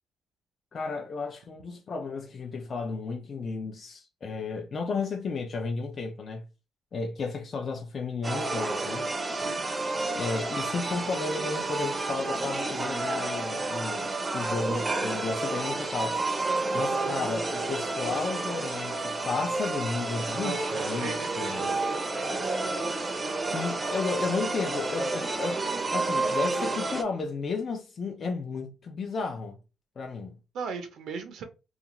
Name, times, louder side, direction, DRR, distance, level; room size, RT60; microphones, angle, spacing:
voice 1, 0.7-6.5 6.9-9.1 10.1-16.2 16.7-21.7 23.4-25.6 25.9-29.6 30.0-30.4, left 4 dB, 45° left, 0.4 m, -33 dB
sound 1, 8.2-27.0, right 2 dB, 25° right, 0.5 m, -30 dB
voice 2, 9.3-9.6 20.4-21.8 30.5-31.4, right 5 dB, 75° right, 0.5 m, -37 dB
2.4 x 2.4 x 2.9 m
cardioid pair, 90°, 0 cm